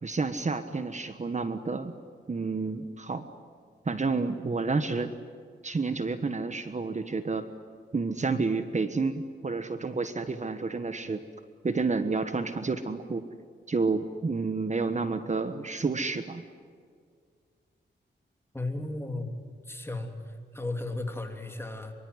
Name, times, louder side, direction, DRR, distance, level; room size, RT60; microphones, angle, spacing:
voice 1, 0.0-1.9 2.3-3.2 3.8-5.1 5.6-7.5 7.9-11.2 11.6-13.3 13.7-16.4, right 4 dB, 40° right, 9 dB, 1.3 m, -30 dB
voice 2, 18.5-19.3 19.7-20.1 20.5-21.9, left 2 dB, 10° left, 4 dB, 3.3 m, -34 dB
25.0 x 24.0 x 9.5 m, 2.1 s
wide cardioid pair, 90°, 19 cm